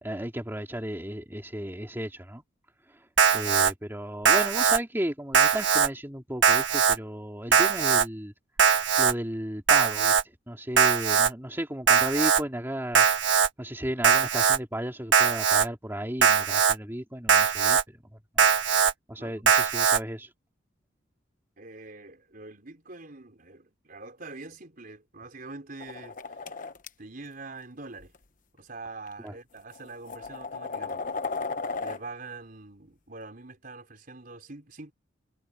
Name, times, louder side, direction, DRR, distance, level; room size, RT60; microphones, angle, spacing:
voice 1, 0.0-2.4 3.3-8.3 9.0-10.2 10.5-13.1 13.6-17.8 18.3-18.5 19.1-20.3 29.2-29.3, equal, 10° right, 2.7 m, -34 dB
Alarm, 3.2-3.7 4.2-4.8 5.3-5.9 6.4-7.0 7.5-8.0 8.6-9.1 9.7-10.2 10.8-11.3 11.9-12.4 12.9-13.5 14.0-14.6 15.1-15.6 16.2-16.7 17.3-17.8 18.4-18.9 19.5-20.0, right 6 dB, 70° right, 1.5 m, -21 dB
voice 2, 21.6-26.6 27.0-28.1 28.5-31.2 31.8-34.9, right 3 dB, 50° right, 4.5 m, -44 dB
sound 1, 25.8-26.9 28.0-28.2 29.1-29.2 29.7-32.0, left 4 dB, 45° left, 1.1 m, -35 dB
head